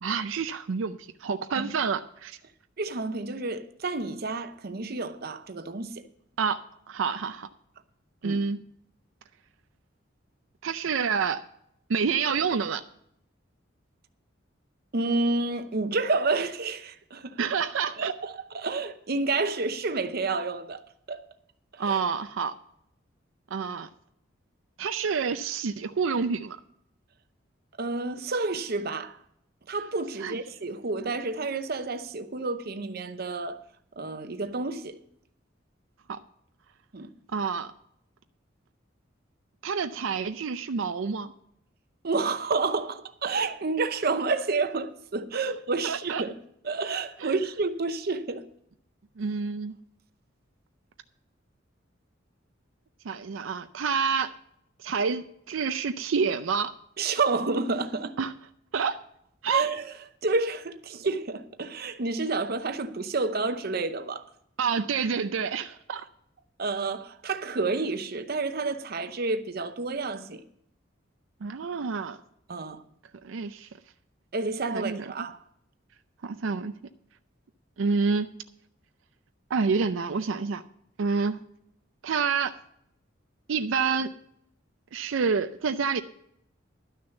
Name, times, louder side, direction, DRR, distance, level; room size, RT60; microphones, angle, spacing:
voice 1, 0.0-2.4 6.4-7.5 8.2-8.6 10.6-11.4 11.9-12.8 17.4-18.1 21.8-22.5 23.5-23.9 24.8-26.6 30.2-30.4 36.1-36.2 37.3-37.7 39.6-41.3 45.3-45.4 45.8-46.2 47.2-47.3 49.2-49.8 53.0-54.3 54.8-56.7 58.2-58.3 58.7-59.0 59.4-59.6 64.6-66.0 71.4-72.2 73.2-73.7 74.7-75.3 76.2-76.7 77.8-78.3 79.5-80.6 81.0-81.4 82.0-82.6 83.5-84.1 84.9-86.0, right 5 dB, 90° right, 0.5 m, -28 dB
voice 2, 2.8-6.0 8.2-8.4 14.9-17.4 18.0-20.8 21.1-21.2 21.9-22.0 27.8-29.2 29.7-33.6 34.0-35.0 36.9-37.1 42.0-46.3 46.6-48.4 57.0-58.1 59.5-59.8 60.2-64.2 66.6-70.4 72.5-72.8 74.3-75.4, right 3 dB, 55° right, 0.8 m, -29 dB
12.0 x 6.4 x 7.0 m
head